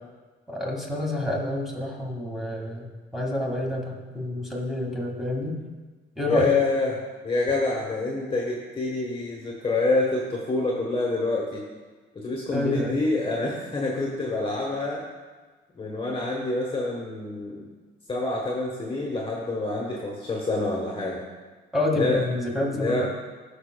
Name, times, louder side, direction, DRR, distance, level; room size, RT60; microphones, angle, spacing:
voice 1, 0.5-5.6 6.2-6.6 12.5-13.1 21.7-23.1, left 1 dB, ahead, -3 dB, 1.8 m, -28 dB
voice 2, 6.3-6.9 7.2-11.6 12.1-15.0 15.7-17.7 18.1-21.2 21.9-22.2 22.7-23.1, left 2 dB, 25° left, -2 dB, 1.1 m, -27 dB
13.5 x 5.0 x 2.2 m, 1.3 s
cardioid pair, 90°, 20 cm